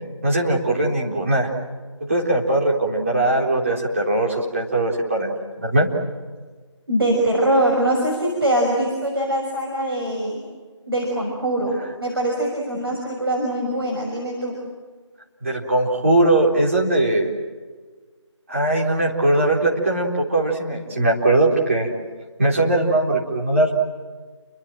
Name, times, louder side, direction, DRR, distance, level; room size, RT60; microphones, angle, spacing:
voice 1, 0.2-1.5 2.1-5.9 15.4-17.3 18.5-21.9 22.4-23.7, right 2 dB, 25° right, -2 dB, 3.9 m, -20 dB
voice 2, 6.9-10.4 10.9-14.5, right 1 dB, 50° right, -1 dB, 6.3 m, -22 dB
30.0 x 24.0 x 7.6 m, 1.4 s
figure-of-eight pair, 170°, 16 cm